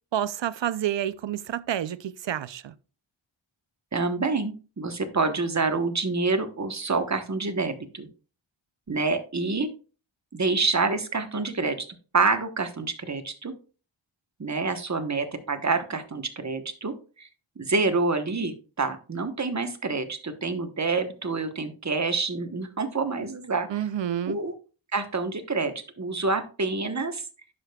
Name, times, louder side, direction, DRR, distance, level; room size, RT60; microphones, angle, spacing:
voice 1, 0.1-2.7 23.7-24.4, right 10 dB, 65° right, 0.5 m, -29 dB
voice 2, 3.9-8.1 8.9-9.7 10.3-11.9 12.1-13.5 14.4-17.3 17.6-23.9 24.3-24.5 24.9-27.3, right 3 dB, 35° right, 1.0 m, -27 dB
11.0 x 5.1 x 2.3 m
wide cardioid pair, 65°, 49 cm